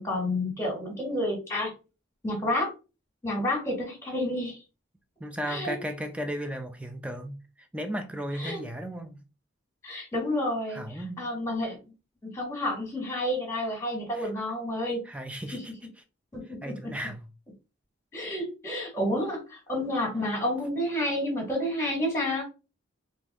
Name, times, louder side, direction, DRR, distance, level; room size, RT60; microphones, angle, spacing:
voice 1, 0.0-1.7 2.2-2.7 3.2-4.6 5.5-5.8 8.4-8.6 9.8-10.8 11.2-11.8 12.3-15.0 16.3-16.7 18.1-22.4, left 1 dB, 15° left, 1.5 m, -30 dB
voice 2, 5.2-9.2 10.7-11.3 14.1-14.3 15.0-15.7 16.6-17.2, equal, 5° right, 0.4 m, -35 dB
3.9 x 2.7 x 3.5 m
head